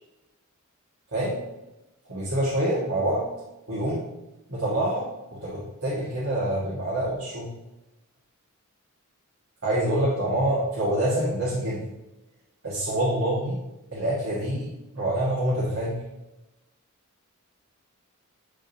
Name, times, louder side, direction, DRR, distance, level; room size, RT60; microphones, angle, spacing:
voice 1, 2.1-3.3 3.7-4.0 4.5-7.5 9.6-11.8 12.6-13.6 13.9-14.7 15.0-16.0, right 1 dB, 70° right, -8 dB, 1.9 m, -26 dB
9.9 x 3.9 x 2.8 m, 0.96 s
head